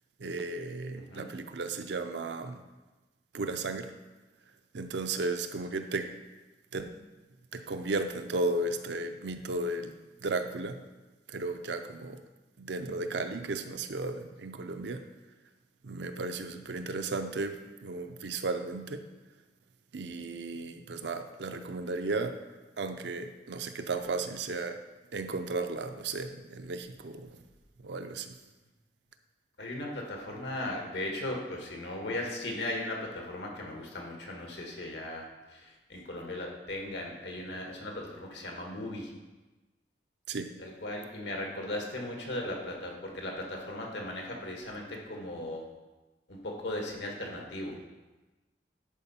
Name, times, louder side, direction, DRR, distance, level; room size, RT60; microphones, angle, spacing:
voice 1, 0.2-2.6 3.3-3.9 4.7-6.1 6.7-6.9 7.5-10.8 11.3-12.2 12.6-15.0 15.8-19.1 19.9-22.4 22.8-24.8 25.1-27.4 27.8-28.4 40.3-40.5, right 3 dB, 75° right, 8 dB, 0.6 m, -34 dB
voice 2, 29.6-35.2 35.5-39.1 40.6-45.6 46.3-47.8, left 1 dB, 80° left, 0 dB, 1.6 m, -37 dB
10.5 x 4.5 x 4.2 m, 1.2 s
head